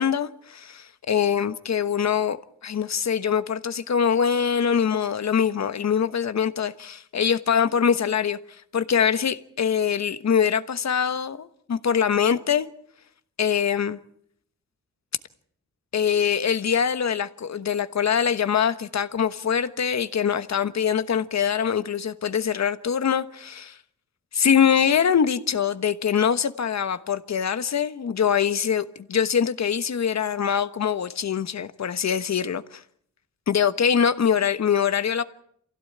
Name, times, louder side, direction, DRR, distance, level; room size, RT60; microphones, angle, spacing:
voice 1, 0.0-2.4 2.6-8.4 8.7-12.7 13.4-14.0 15.9-23.8 24.3-32.8 33.5-35.2, left 7 dB, 65° left, 1.2 m, -23 dB
27.5 x 16.0 x 8.7 m
wide cardioid pair, 135°, 29 cm